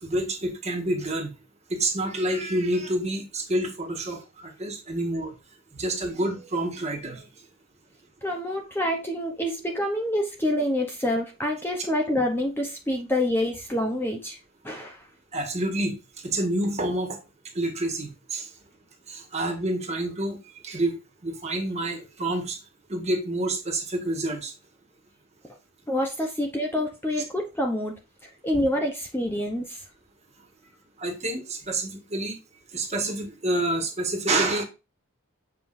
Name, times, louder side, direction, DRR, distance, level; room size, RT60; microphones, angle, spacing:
voice 1, 0.0-1.3 1.7-5.3 5.7-7.2 15.3-16.0 16.2-17.2 17.5-18.5 19.1-20.4 20.6-21.0 21.2-22.6 22.9-24.5 28.5-28.6 31.0-32.4 32.7-34.6, right 1 dB, 30° right, 3 dB, 1.6 m, -28 dB
voice 2, 8.2-14.4 14.6-15.0 25.4-25.5 25.9-27.9 28.2-29.8, left 1 dB, 10° left, 2 dB, 0.8 m, -27 dB
7.6 x 5.1 x 2.6 m, 0.28 s
head